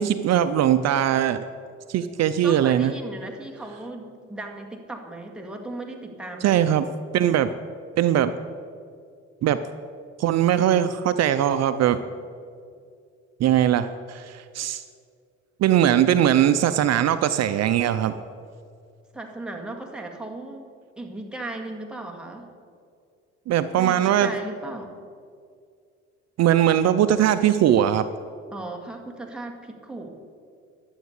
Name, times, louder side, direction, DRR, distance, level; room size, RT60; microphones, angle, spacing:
voice 1, 0.0-1.4 1.9-2.9 6.4-6.9 7.1-7.5 8.0-8.3 9.4-9.6 10.2-12.0 13.4-14.8 15.6-18.1 23.5-24.3 26.4-28.0, right 10 dB, 60° right, 11 dB, 0.6 m, -20 dB
voice 2, 2.4-6.6 19.1-22.5 23.8-24.9 28.5-30.1, right 2 dB, 5° right, 0 dB, 2.0 m, -36 dB
12.0 x 8.2 x 8.1 m, 2.2 s
cardioid pair, 95°, 29 cm